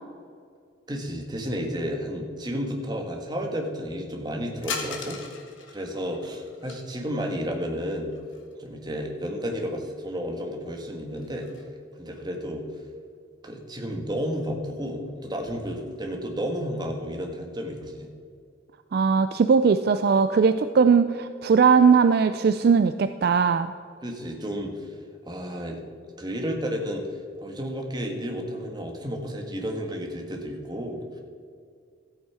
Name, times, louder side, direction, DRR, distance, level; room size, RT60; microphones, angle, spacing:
voice 1, 0.9-5.2 5.7-8.1 8.6-11.5 12.0-12.6 13.4-18.1 24.0-24.9 25.3-25.8 26.2-31.2, equal, 20° right, 2 dB, 1.4 m, -32 dB
sound 1, 4.6-6.8 7.9-8.7 9.0-9.1 10.1-10.2 10.6-11.7, left 5 dB, 75° left, 1.5 m, -38 dB
voice 2, 18.9-23.7, right 5 dB, 50° right, 10 dB, 0.3 m, -19 dB
13.5 x 8.5 x 4.8 m, 2.2 s
head